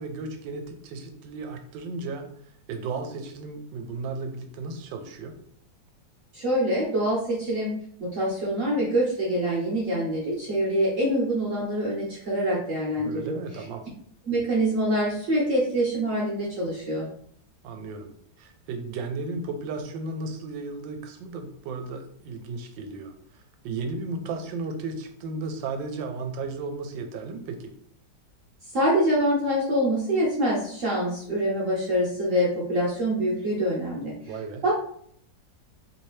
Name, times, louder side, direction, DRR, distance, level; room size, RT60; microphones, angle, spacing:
voice 1, 0.0-2.3 2.7-5.4 13.0-13.8 17.6-27.7 34.3-34.6, right 3 dB, 85° right, 6 dB, 1.3 m, -35 dB
voice 2, 6.3-7.7 8.0-13.4 14.3-17.1 28.7-34.1 34.6-34.7, equal, 55° right, -6 dB, 1.1 m, -25 dB
3.2 x 2.7 x 3.1 m, 0.63 s
omnidirectional pair, 2.0 m